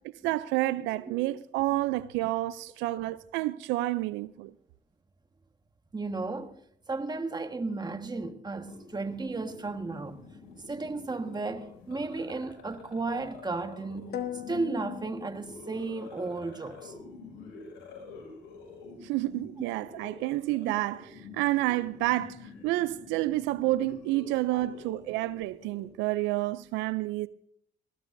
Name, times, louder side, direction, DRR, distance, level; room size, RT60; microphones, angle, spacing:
voice 1, 0.2-4.5 19.0-27.3, right 17 dB, 90° right, 0.4 m, -29 dB
voice 2, 5.9-6.6 6.9-10.2 10.7-14.2 14.5-16.9 24.5-24.6, right 3 dB, 20° right, 1.5 m, -34 dB
sound 1, 8.7-25.9, left 4 dB, 90° left, 6.4 m, -48 dB
sound 2, 14.1-16.1, left 11 dB, 65° left, 1.4 m, -39 dB
20.0 x 16.0 x 2.6 m
supercardioid pair, 75°, 18 cm